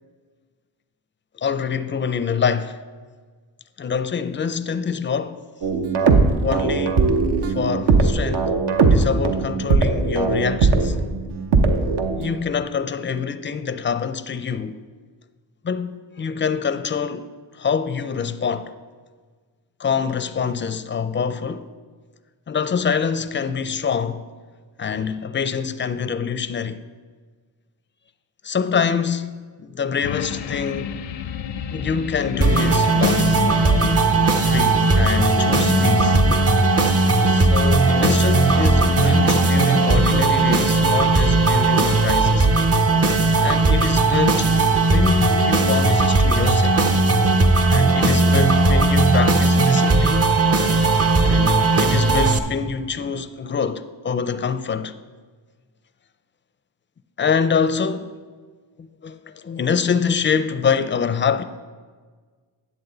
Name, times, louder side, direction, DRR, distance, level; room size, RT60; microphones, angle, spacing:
voice 1, 1.4-2.8 3.8-5.5 6.4-7.0 7.5-11.0 12.2-14.8 15.6-18.7 19.8-21.7 22.5-24.3 24.8-26.8 28.4-31.0 31.7-33.4 34.5-36.2 37.3-42.6 43.4-44.5 44.9-46.8 47.7-50.2 51.2-54.9 57.2-58.1 58.8-61.4, left 6 dB, 25° left, 0.4 m, -25 dB
sound 1, 5.6-12.3, right 4 dB, 65° right, 0.9 m, -19 dB
sound 2, 30.0-41.8 42.2-42.3, left 7 dB, 80° left, 0.6 m, -31 dB
sound 3, 32.4-52.4, right 3 dB, 35° right, 0.7 m, -17 dB
9.8 x 7.5 x 3.9 m
cardioid pair, 65°, 44 cm